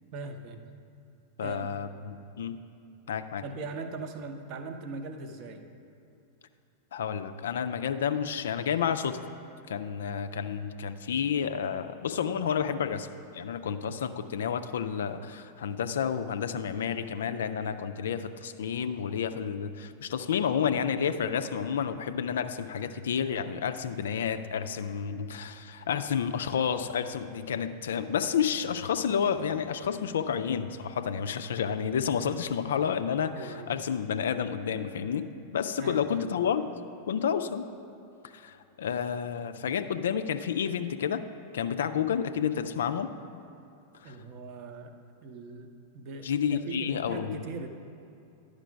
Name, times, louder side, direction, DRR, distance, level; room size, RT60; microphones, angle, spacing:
voice 1, 0.1-0.6 1.4-1.7 3.4-5.6 33.3-33.7 35.8-36.3 44.0-44.9 45.2-47.7, right 3 dB, 40° right, 6 dB, 0.7 m, -40 dB
voice 2, 1.4-2.6 3.1-3.4 6.9-9.2 9.7-13.1 13.3-36.7 37.1-37.7 38.3-41.3 41.5-43.1 44.0-44.2 46.2-47.5, left 7 dB, 65° left, 10 dB, 0.3 m, -30 dB
11.0 x 5.2 x 5.0 m, 2.8 s
figure-of-eight pair, 90°, 0 cm